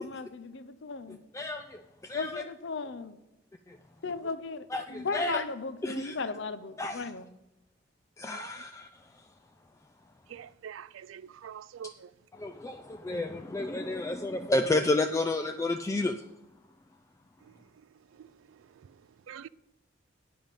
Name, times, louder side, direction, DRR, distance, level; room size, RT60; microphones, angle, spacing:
voice 1, 0.0-1.2 2.1-3.2 4.0-7.4, left 4 dB, 60° left, 0.6 m, -36 dB
voice 2, 1.3-2.4 3.7-3.8 4.7-5.4 5.8-6.1 6.8-7.0 8.2-8.9 12.3-16.1, left 2 dB, 15° left, 0.3 m, -31 dB
voice 3, 10.3-11.9 19.3-19.5, right 8 dB, 75° right, 0.3 m, -44 dB
9.5 x 5.2 x 7.2 m
head